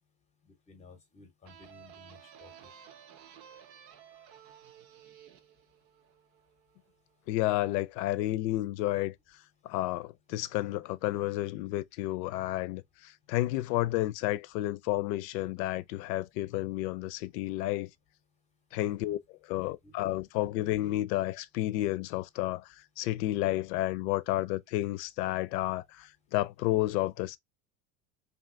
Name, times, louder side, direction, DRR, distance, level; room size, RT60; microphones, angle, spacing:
voice 1, 0.5-2.7 18.7-19.2 19.6-20.0, left 2 dB, 15° left, 0.6 m, -55 dB
sound 1, 1.4-6.9, right 9 dB, 85° right, 0.9 m, -54 dB
voice 2, 7.3-9.1 9.6-17.9 18.7-19.2 19.4-27.4, left 16 dB, 85° left, 0.5 m, -31 dB
3.3 x 2.7 x 2.5 m
cardioid pair, 160°, 48 cm